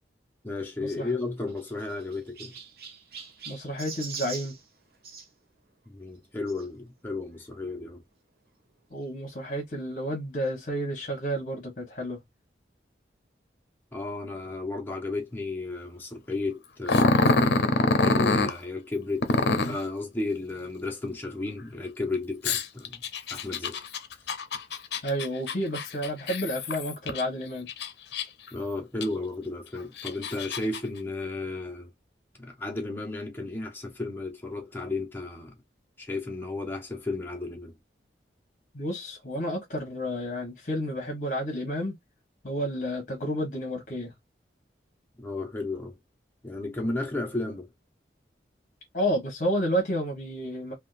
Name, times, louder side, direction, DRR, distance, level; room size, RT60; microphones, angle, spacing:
voice 1, 0.4-2.6 5.9-8.0 13.9-17.4 18.0-19.3 19.7-23.0 23.3-23.8 28.5-31.9 32.4-35.6 36.0-37.8 45.2-46.0 46.4-47.7, left 2 dB, 10° left, 0.8 m, -33 dB
Chirp tweet, 1.0-5.3 6.5-6.7 7.4-7.5 7.7-7.8 9.0-9.1, right 5 dB, 55° right, 0.8 m, -42 dB
voice 2, 3.5-4.5 8.9-12.2 25.0-27.7 38.7-41.9 42.4-44.1 48.9-50.7, equal, 45° left, 1.1 m, -31 dB
Growling, 16.9-18.5 19.2-19.8 22.4-27.2 27.7-28.5 29.0-29.1 29.8-30.8, left 3 dB, 65° left, 0.6 m, -25 dB
3.5 x 2.3 x 2.5 m
head